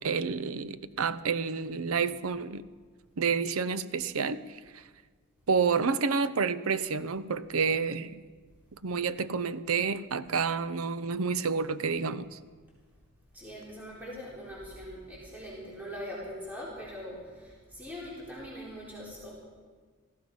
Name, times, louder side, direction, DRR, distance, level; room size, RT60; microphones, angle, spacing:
voice 1, 0.0-2.6 3.2-4.8 5.5-8.2 8.8-12.4, right 5 dB, 75° right, 15 dB, 0.7 m, -29 dB
voice 2, 13.3-19.3, equal, 10° right, -7 dB, 4.0 m, -42 dB
17.5 x 14.5 x 5.4 m, 1.5 s
head